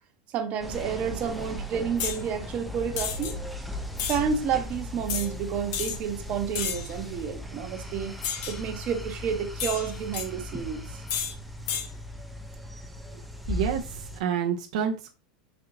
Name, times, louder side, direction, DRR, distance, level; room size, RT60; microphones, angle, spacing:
voice 1, 0.3-3.4 4.1-8.2 8.5-11.0, right 7 dB, 40° right, 0.7 m, -30 dB
sound 1, 0.6-14.2, equal, ahead, 0.4 m, -37 dB
sound 2, 2.0-2.2 3.0-3.3 4.0-4.2 5.1-5.3 5.7-6.0 6.5-6.9 8.2-8.6 9.6-10.3 11.1-11.3 11.7-11.9, left 7 dB, 60° left, 0.7 m, -31 dB
voice 2, 13.5-15.1, right 8 dB, 75° right, 0.5 m, -29 dB
4.2 x 2.7 x 2.5 m
supercardioid pair, 130°, 4 cm